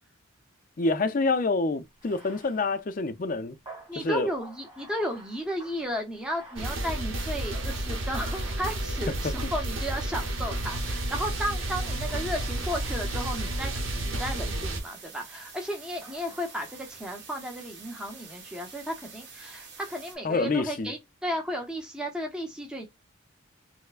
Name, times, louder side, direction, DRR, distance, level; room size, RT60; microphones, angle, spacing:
voice 1, 0.8-3.6 4.0-4.3 9.2-9.3 20.2-20.9, left 3 dB, 40° left, 0.4 m, -27 dB
Bathtub (filling or washing), 1.9-9.3 9.8-11.1 11.7-14.9 16.0-17.0, right 2 dB, 25° right, 1.8 m, -52 dB
voice 2, 3.9-22.9, equal, 5° right, 0.6 m, -34 dB
Melodic Metal with Reverb Lead, 6.6-14.8, right 1 dB, 75° right, 1.0 m, -31 dB
sound 1, 10.5-20.2, right 5 dB, 60° right, 1.3 m, -48 dB
4.4 x 2.1 x 2.4 m
head